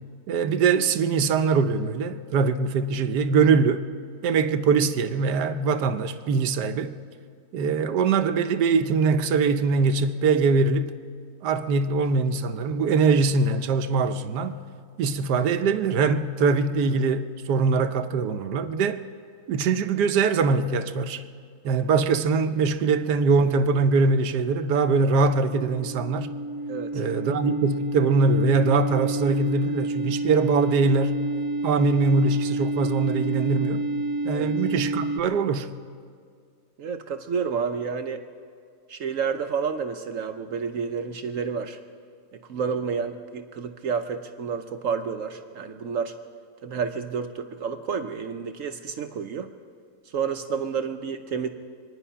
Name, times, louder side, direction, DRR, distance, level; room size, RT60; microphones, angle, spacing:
voice 1, 0.3-3.8 4.2-7.0 7.5-11.0 11.4-14.6 15.0-19.0 19.5-21.2 21.6-26.3 26.9-31.2 31.6-33.8 34.2-35.7, right 4 dB, 85° right, 1.3 m, -22 dB
sound 1, 25.0-35.2, right 2 dB, 25° right, 0.5 m, -29 dB
voice 2, 26.7-27.1 34.3-34.5 36.8-38.2 38.9-41.8 42.5-46.1 46.6-49.5 50.1-51.5, right 6 dB, 60° right, 1.0 m, -30 dB
25.5 x 9.9 x 5.6 m
omnidirectional pair, 1.7 m